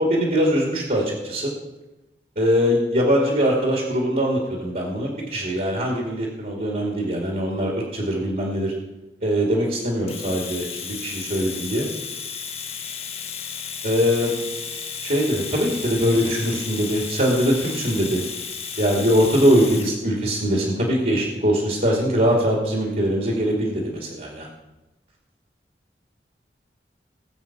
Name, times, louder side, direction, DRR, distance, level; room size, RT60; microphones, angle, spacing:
voice 1, 0.0-1.5 2.4-8.7 9.2-11.9 13.8-14.3 15.0-18.2 18.8-24.5, equal, 50° right, -1 dB, 2.6 m, -22 dB
Domestic sounds home sounds, 10.1-20.0, left 6 dB, 35° left, 1.2 m, -33 dB
19.0 x 8.0 x 6.0 m, 1.0 s
head